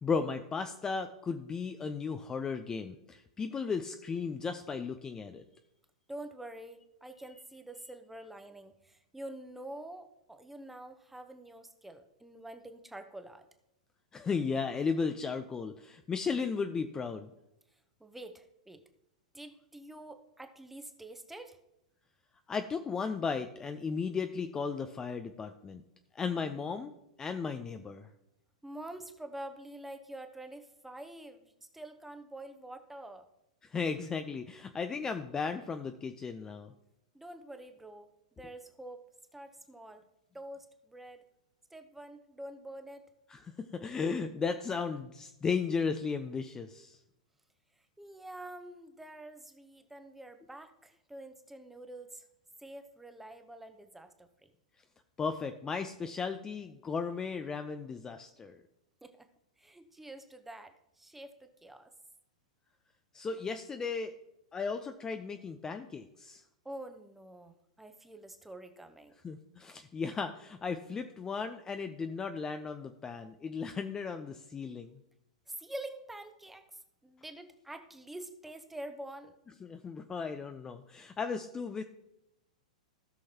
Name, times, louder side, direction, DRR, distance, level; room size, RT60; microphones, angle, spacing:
voice 1, 0.0-5.4 14.1-17.3 22.5-25.8 26.1-26.9 27.2-28.1 33.7-36.7 43.3-47.0 55.2-58.6 63.1-64.1 64.5-66.4 69.2-75.0 79.6-81.8, left 5 dB, 15° left, 8 dB, 0.5 m, -35 dB
voice 2, 6.1-13.4 18.0-18.8 19.3-21.6 28.6-33.3 37.1-39.0 39.3-40.0 40.3-41.2 41.7-43.0 48.0-52.2 52.6-54.5 59.0-59.3 59.6-61.9 66.6-69.1 75.5-76.6 77.0-79.4, right 1 dB, 5° right, 8 dB, 0.9 m, -47 dB
16.5 x 6.3 x 2.9 m, 0.86 s
figure-of-eight pair, 100°, 4 cm